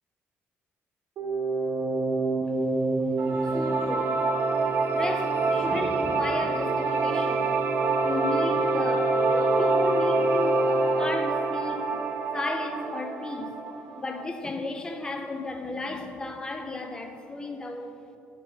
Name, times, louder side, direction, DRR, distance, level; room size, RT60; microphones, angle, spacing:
sound 1, 1.2-12.8, right 2 dB, 70° right, 1.1 m, -28 dB
voice 1, 3.2-4.3 4.9-7.6 8.0-11.8 12.3-13.5 14.0-17.9, left 2 dB, 15° left, 5 dB, 0.6 m, -34 dB
sound 2, 3.2-14.2, right 4 dB, 50° right, 0.5 m, -28 dB
8.0 x 3.9 x 4.7 m, 2.7 s
cardioid pair, 135°, 5 cm